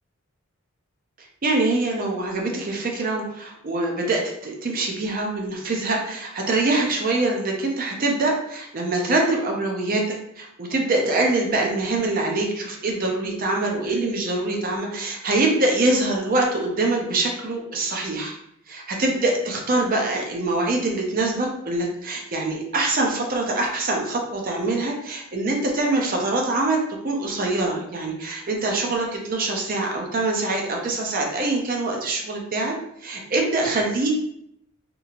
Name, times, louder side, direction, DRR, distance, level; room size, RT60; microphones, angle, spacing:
voice 1, 1.4-18.3 18.7-32.7 33.0-34.1, right 2 dB, 40° right, 0 dB, 0.5 m, -24 dB
3.0 x 2.7 x 2.4 m, 0.76 s
head